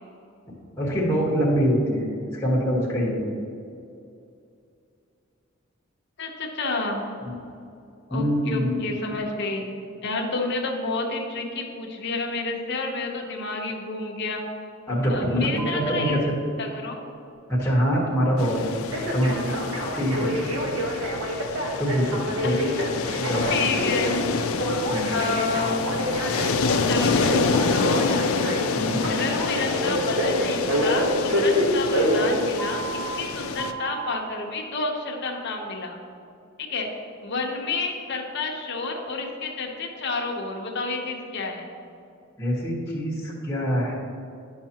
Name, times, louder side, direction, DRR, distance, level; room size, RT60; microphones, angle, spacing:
voice 1, 0.8-2.1 2.3-3.3 7.2-7.4 8.1-8.8 14.9-16.3 17.5-18.7 19.1-20.3 21.8-22.6 23.2-23.5 24.9-25.2 28.7-29.1 42.4-43.9, equal, 10° left, -5 dB, 1.3 m, -24 dB
voice 2, 6.2-7.1 8.1-9.6 10.0-14.4 15.1-16.2 16.6-17.0 22.4-22.9 23.5-24.2 25.1-25.8 26.9-28.2 29.1-32.8 33.2-36.0 36.6-36.9 37.2-41.6, left 3 dB, 55° left, 1 dB, 0.9 m, -30 dB
Telephone, 15.6-16.1 18.9-33.1 33.6-34.1, equal, 80° right, 1.2 m, -27 dB
sound 1, 18.4-33.7, left 4 dB, 90° left, 0.5 m, -27 dB
10.5 x 5.6 x 2.9 m, 2.6 s
head